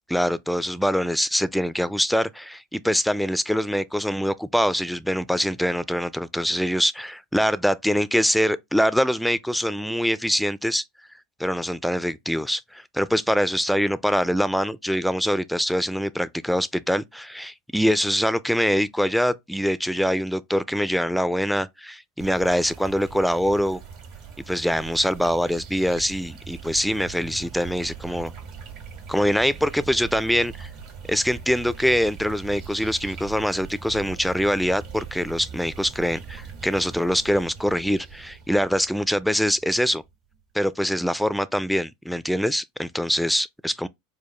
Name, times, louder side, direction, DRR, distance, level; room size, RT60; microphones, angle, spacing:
voice 1, 0.1-10.8 11.4-23.8 24.5-28.3 29.1-30.7 31.1-40.0 40.5-43.9, equal, ahead, 0.3 m, -24 dB
sound 1, 22.2-40.4, right 6 dB, 55° right, 1.6 m, -41 dB
4.6 x 2.2 x 3.2 m
hypercardioid pair, 85°, 0 cm